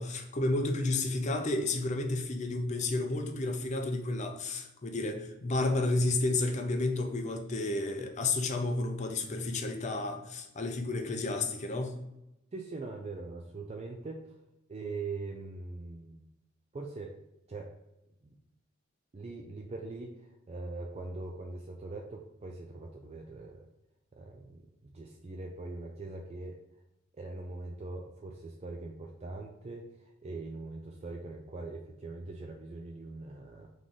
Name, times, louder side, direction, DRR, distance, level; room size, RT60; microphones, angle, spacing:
voice 1, 0.0-12.0, left 2 dB, 35° left, 4 dB, 0.5 m, -31 dB
voice 2, 12.5-14.4 14.7-16.3 16.7-17.2 17.5-17.7 18.2-18.3 19.1-23.7 24.1-26.6 27.2-33.7, right 3 dB, 30° right, 1 dB, 0.4 m, -42 dB
3.8 x 3.1 x 3.8 m, 0.90 s
head